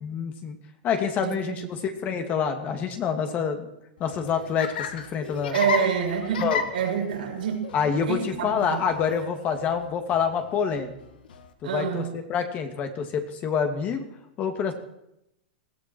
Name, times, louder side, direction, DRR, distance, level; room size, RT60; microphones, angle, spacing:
voice 1, 0.0-0.6 0.8-3.7 4.0-5.6 6.4-6.6 7.7-10.9 11.6-14.0 14.4-14.7, left 7 dB, 30° left, 6 dB, 2.3 m, -27 dB
voice 2, 1.2-1.7 5.5-6.5 6.7-7.6 8.1-8.8 11.6-12.1, right 7 dB, 80° right, 1 dB, 6.4 m, -27 dB
Laughter, 4.0-11.5, left 6 dB, 80° left, 2.0 m, -35 dB
21.0 x 14.5 x 4.6 m, 0.83 s
hypercardioid pair, 130°, 5 cm